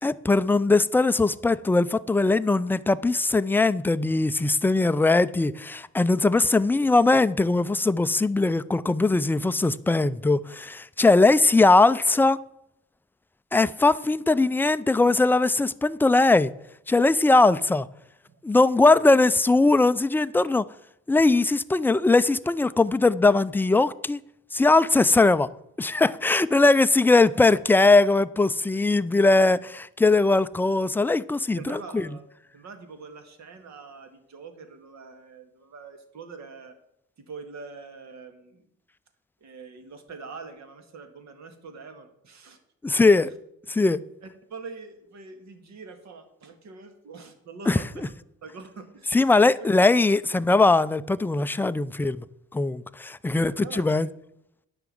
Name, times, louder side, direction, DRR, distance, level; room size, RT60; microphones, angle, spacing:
voice 1, 0.0-12.4 13.5-16.5 16.9-17.9 18.4-20.7 21.1-24.2 24.5-25.5 25.8-32.1 42.8-43.3 43.7-44.0 47.7-47.8 49.1-52.3 52.5-54.1, left 3 dB, 5° left, 14 dB, 0.4 m, -20 dB
voice 2, 31.5-32.2 32.5-36.8 37.2-38.7 39.4-42.6 44.2-48.1 48.4-49.2 49.4-49.9 53.3-54.1, right 4 dB, 65° right, 7 dB, 1.9 m, -44 dB
10.5 x 6.1 x 7.6 m, 0.80 s
cardioid pair, 90°, 30 cm